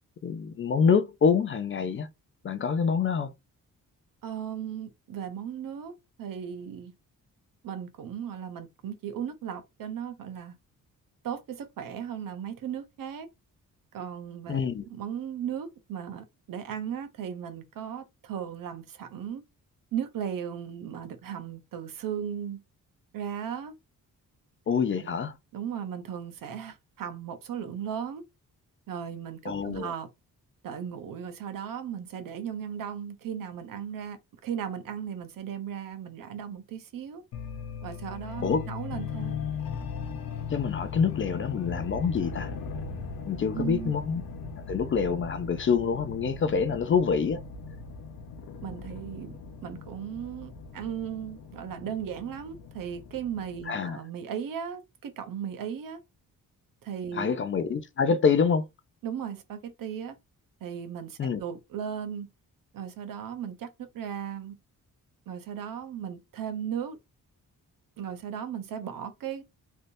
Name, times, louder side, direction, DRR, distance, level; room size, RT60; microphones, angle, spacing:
voice 1, 0.2-2.1 2.4-3.3 14.5-14.8 24.7-25.4 29.4-29.9 38.4-38.6 40.5-42.5 43.3-44.2 44.7-47.4 53.7-54.0 57.1-58.7 61.2-61.4, left 6 dB, 35° left, 0.4 m, -26 dB
voice 2, 4.2-5.9 6.2-6.9 7.6-10.6 11.2-13.3 13.9-19.4 19.9-22.6 23.1-23.7 25.5-28.2 28.9-30.1 30.6-37.2 37.8-39.4 43.5-43.9 48.6-56.0 56.8-57.5 59.0-60.2 60.6-62.3 62.7-64.6 65.3-67.0 68.0-69.4, right 8 dB, 65° right, 0.7 m, -36 dB
sound 1, 37.3-53.6, left 5 dB, 75° left, 0.7 m, -38 dB
3.3 x 2.7 x 2.6 m
cardioid pair, 130°, 35 cm